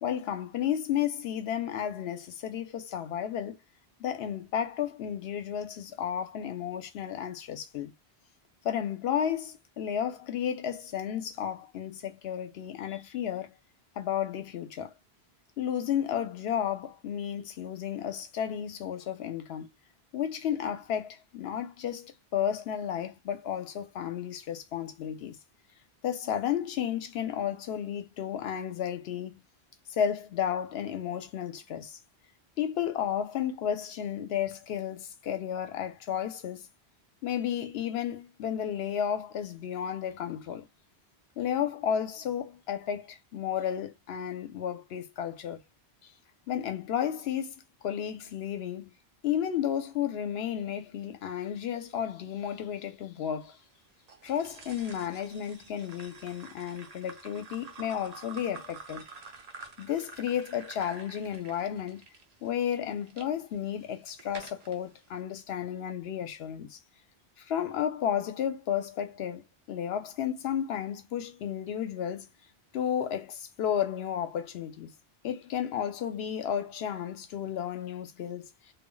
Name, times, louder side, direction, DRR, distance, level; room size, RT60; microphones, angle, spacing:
voice 1, 0.0-3.6 4.0-7.9 8.6-13.5 14.0-14.9 15.6-19.7 20.1-25.4 26.0-29.4 29.9-32.0 32.6-36.7 37.2-40.7 41.4-45.6 46.5-47.5 47.8-48.9 49.2-53.6 54.2-59.0 59.8-62.1 62.4-66.8 67.4-69.4 69.7-72.3 72.7-74.9 75.2-78.5, left 9 dB, 75° left, 0.8 m, -32 dB
sound 1, 54.1-63.3 63.8-64.8, right 4 dB, 45° right, 0.6 m, -48 dB
2.2 x 2.0 x 3.7 m
omnidirectional pair, 1.1 m